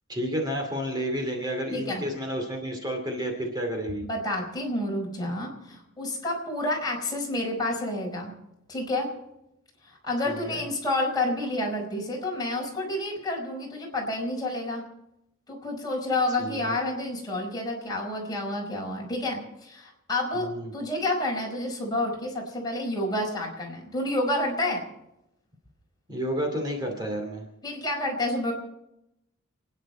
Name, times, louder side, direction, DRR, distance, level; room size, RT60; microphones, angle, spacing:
voice 1, 0.1-4.1 10.2-10.7 16.4-16.8 20.3-20.7 26.1-27.5, equal, 20° right, 2 dB, 2.5 m, -31 dB
voice 2, 1.7-2.0 4.0-8.3 8.7-9.1 10.0-14.8 15.5-20.5 20.7-24.8 27.6-28.5, left 1 dB, 20° left, -1 dB, 4.9 m, -29 dB
29.5 x 10.0 x 4.4 m, 0.86 s
head